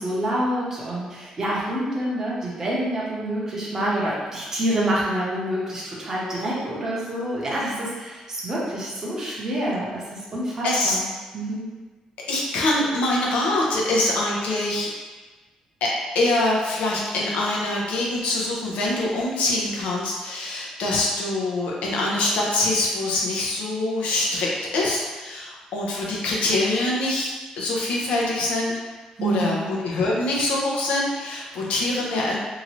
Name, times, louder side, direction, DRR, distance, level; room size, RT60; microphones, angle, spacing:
voice 1, 0.0-11.0 11.3-11.7 29.2-29.7, right 1 dB, 25° right, -6 dB, 0.7 m, -27 dB
voice 2, 10.6-11.0 12.3-14.9 15.8-24.5 24.7-28.7 29.2-32.4, left 2 dB, 85° left, -3 dB, 0.7 m, -24 dB
2.8 x 2.5 x 3.0 m, 1.3 s
cardioid pair, 170°, 2 cm